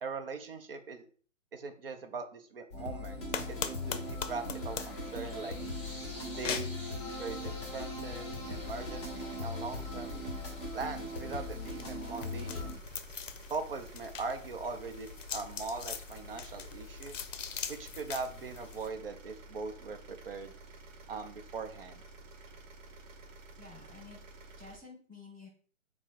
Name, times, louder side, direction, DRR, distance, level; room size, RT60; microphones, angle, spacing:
voice 1, 0.0-1.1 1.5-3.2 3.5-5.6 6.4-6.7 7.1-10.2 10.7-12.8 13.5-17.2 17.7-20.5 21.1-22.0, right 4 dB, 45° right, 7 dB, 0.5 m, -41 dB
sound 1, 2.7-12.7, left 1 dB, 20° left, 0.8 m, -39 dB
sound 2, 3.3-18.9, left 7 dB, 70° left, 0.5 m, -43 dB
sound 3, 8.4-24.8, right 2 dB, 65° right, 0.9 m, -52 dB
voice 2, 23.6-24.2 24.6-25.5, left 4 dB, 10° right, -8 dB, 1.0 m, -51 dB
3.6 x 2.0 x 4.3 m, 0.43 s
hypercardioid pair, 155°, 40 cm